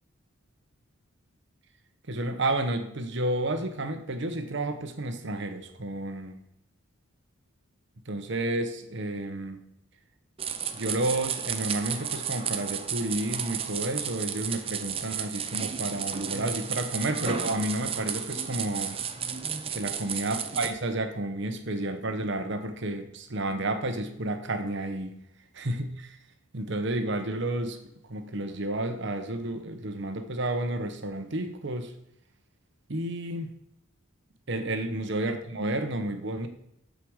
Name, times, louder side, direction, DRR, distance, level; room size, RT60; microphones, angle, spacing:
voice 1, 2.1-6.4 8.1-9.6 10.7-19.0 19.7-25.2 25.6-26.2 26.5-27.8 28.1-31.9 32.9-33.5 34.5-36.5, right 1 dB, 55° right, 7 dB, 1.1 m, -31 dB
sound 1, 10.4-20.7, right 7 dB, 25° right, 0.6 m, -33 dB
13.5 x 5.2 x 4.8 m, 0.78 s
head